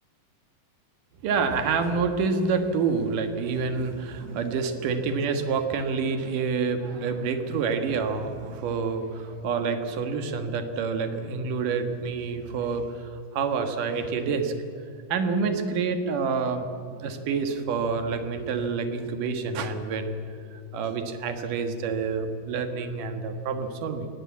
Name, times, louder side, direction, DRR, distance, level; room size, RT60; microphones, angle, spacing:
voice 1, 1.2-14.5 15.1-16.7 16.9-20.2 20.5-24.1, right 5 dB, 65° right, 7 dB, 2.8 m, -28 dB
20.5 x 18.0 x 8.4 m, 2.6 s
omnidirectional pair, 4.5 m